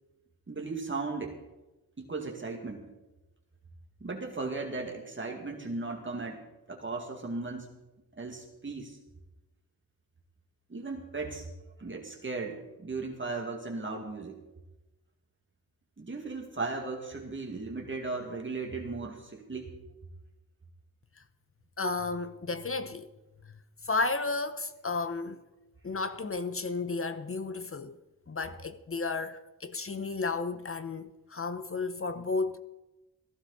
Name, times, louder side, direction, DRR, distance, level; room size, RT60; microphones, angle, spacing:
voice 1, 0.5-1.4 2.0-2.9 4.0-7.7 8.2-9.0 10.7-11.5 11.8-14.4 16.0-19.8, right 3 dB, 35° right, 2.2 m, -36 dB
voice 2, 21.8-23.1 23.8-25.4 25.8-28.0 28.3-32.6, left 3 dB, 40° left, 0.8 m, -33 dB
17.5 x 15.5 x 4.1 m
wide cardioid pair, 105°, 35 cm